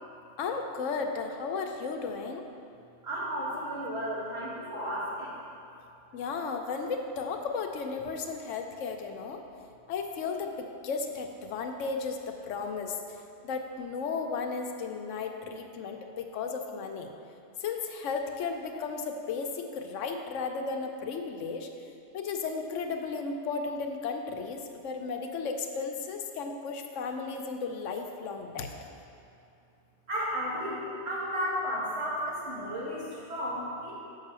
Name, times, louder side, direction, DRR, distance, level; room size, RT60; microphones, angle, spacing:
voice 1, 0.4-2.4 6.1-9.4 9.9-12.9 13.4-17.1 17.6-21.7 22.1-28.7, left 4 dB, 85° left, 4 dB, 1.0 m, -34 dB
voice 2, 3.0-5.4 30.1-33.9, equal, 60° right, -8 dB, 2.2 m, -33 dB
5.7 x 5.6 x 6.7 m, 2.6 s
omnidirectional pair, 1.2 m